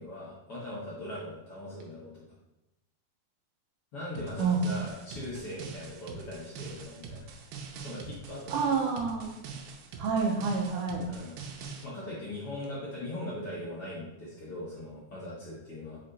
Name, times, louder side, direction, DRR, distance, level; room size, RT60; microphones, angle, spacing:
voice 1, 0.0-2.2 3.9-7.3 7.8-8.7 11.1-11.4 11.8-16.0, left 1 dB, 60° left, -7 dB, 1.6 m, -40 dB
sound 1, 4.2-11.9, right 5 dB, 90° right, 2.5 m, -44 dB
voice 2, 8.5-9.3 10.0-11.0, right 5 dB, 75° right, 0 dB, 2.1 m, -28 dB
5.6 x 4.3 x 3.9 m, 0.96 s
omnidirectional pair, 4.0 m